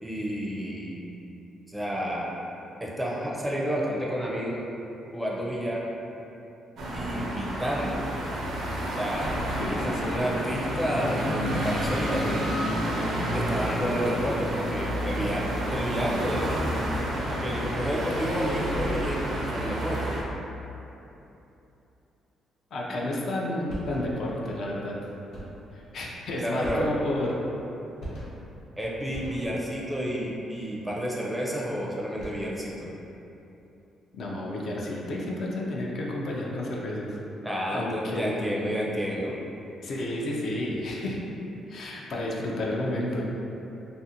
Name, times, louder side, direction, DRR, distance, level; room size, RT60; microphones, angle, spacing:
voice 1, 0.0-1.0 1.7-2.3 2.8-4.6 5.1-5.9 6.9-8.0 9.0-9.4 9.7-12.5 13.3-16.5 17.3-20.1 26.4-26.9 28.8-32.9 37.4-39.4, equal, 10° right, -4 dB, 0.4 m, -30 dB
sound 1, 6.8-20.2, equal, 70° right, 0.5 m, -29 dB
voice 2, 9.6-10.2 22.7-25.0 25.7-27.5 34.1-37.2 37.7-38.6 39.8-41.2 41.7-43.3, left 1 dB, 60° left, -3 dB, 0.4 m, -31 dB
sound 2, 23.7-24.3 25.3-25.7 26.6-27.2 28.0-28.6 29.1-29.8 32.0-32.6, right 1 dB, 85° left, 0.9 m, -40 dB
2.5 x 2.4 x 2.7 m, 3.0 s
cardioid pair, 90°, 0 cm